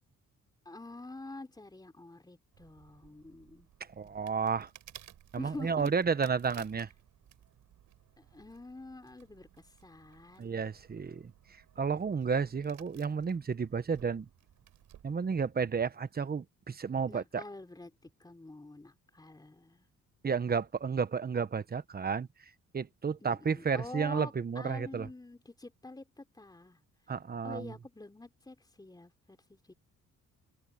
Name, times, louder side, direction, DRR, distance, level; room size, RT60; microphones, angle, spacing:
voice 1, 0.6-3.7 5.4-6.0 8.2-10.6 11.8-11.9 17.1-19.9 23.2-26.8 27.4-29.7, left 2 dB, 15° left, 4.0 m, -47 dB
sound 1, 2.5-15.2, right 11 dB, 75° right, 4.8 m, -58 dB
voice 2, 4.0-4.7 5.3-6.9 10.4-11.3 11.8-14.3 15.0-17.4 20.2-22.3 22.7-25.1 27.1-27.7, right 5 dB, 30° right, 1.2 m, -32 dB
open air
cardioid pair, 90°, 30 cm